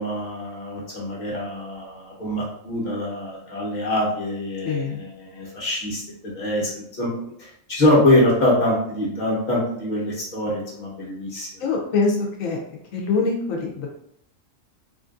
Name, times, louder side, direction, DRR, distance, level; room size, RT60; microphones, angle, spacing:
voice 1, 0.0-7.1 7.4-11.5, left 1 dB, 40° left, -5 dB, 1.0 m, -24 dB
voice 2, 4.6-5.0 11.6-12.6 12.9-13.9, left 4 dB, 80° left, 0 dB, 1.1 m, -24 dB
3.2 x 2.5 x 2.5 m, 0.72 s
omnidirectional pair, 1.4 m